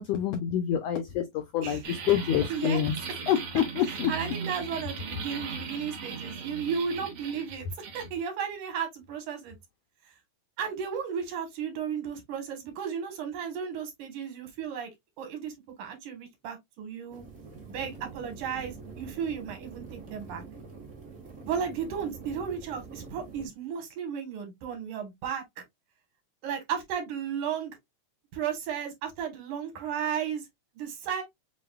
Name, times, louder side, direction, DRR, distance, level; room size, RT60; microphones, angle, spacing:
voice 1, 0.0-3.0 3.3-4.1, left 10 dB, 85° left, 1.4 m, -27 dB
sound 1, 1.8-8.1, right 5 dB, 60° right, 1.8 m, -38 dB
voice 2, 3.8-7.7 7.9-9.6 10.6-14.9 15.2-15.5 15.8-17.2 17.7-20.4 21.5-25.4 26.4-27.8 28.3-30.5 30.7-31.2, right 7 dB, 90° right, 2.8 m, -34 dB
sound 2, 17.1-23.5, right 4 dB, 40° right, 0.9 m, -45 dB
7.2 x 2.4 x 2.2 m
omnidirectional pair, 3.4 m